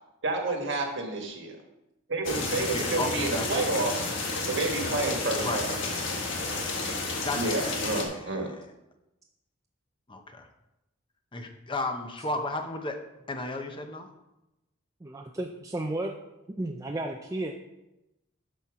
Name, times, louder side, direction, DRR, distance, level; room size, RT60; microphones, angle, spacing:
voice 1, 0.2-1.6 2.1-4.0 4.5-5.7 7.3-8.5, right 2 dB, 65° right, 3 dB, 1.6 m, -29 dB
sound 1, 2.2-8.0, left 3 dB, 65° left, 1.5 m, -31 dB
voice 2, 2.6-3.5 5.4-5.6 7.2-8.7 10.1-10.5 11.3-13.0 13.3-14.1, left 2 dB, 25° left, 5 dB, 0.8 m, -34 dB
voice 3, 15.0-16.1 16.6-17.5, right 1 dB, 15° right, 2 dB, 0.5 m, -33 dB
12.5 x 4.4 x 4.8 m, 0.93 s
head